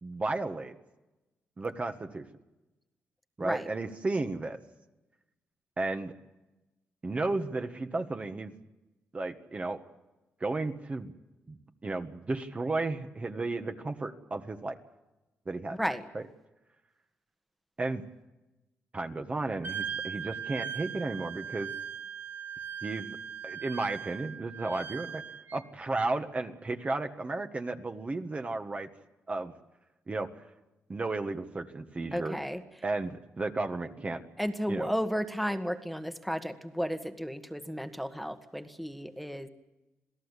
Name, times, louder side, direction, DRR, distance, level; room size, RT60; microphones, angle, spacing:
voice 1, 0.0-0.7 1.6-2.2 3.4-4.6 5.8-6.1 7.0-8.6 9.1-9.8 10.4-11.1 11.5-11.6 11.8-14.8 15.5-15.8 16.1-16.3 17.8-18.0 18.9-21.7 22.8-23.2 23.4-25.2 25.5-28.9 29.3-29.5 30.1-30.3 30.9-32.4 32.8-34.2 34.7-34.9, right 3 dB, 30° right, 6 dB, 1.6 m, -33 dB
Wind instrument woodwind instrument, 19.6-25.6, right 7 dB, 45° right, 1.6 m, -39 dB
voice 2, 32.1-32.6 34.4-39.5, equal, ahead, 9 dB, 1.6 m, -33 dB
27.5 x 17.5 x 8.3 m, 1.0 s
cardioid pair, 100°, 5 cm